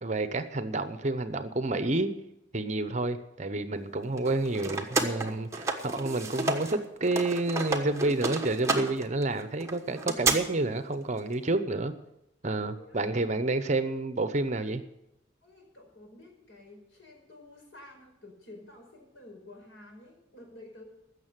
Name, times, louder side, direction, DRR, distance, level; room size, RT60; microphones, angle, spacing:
voice 1, 0.0-2.1 2.5-11.9 12.4-14.8, right 2 dB, 35° right, 11 dB, 0.8 m, -29 dB
sound 1, 4.2-6.8 7.0-10.3, right 3 dB, 15° right, 1.1 m, -31 dB
voice 2, 12.4-13.1 15.4-20.8, left 2 dB, 80° left, 1 dB, 5.1 m, -51 dB
15.5 x 6.6 x 9.0 m, 0.86 s
head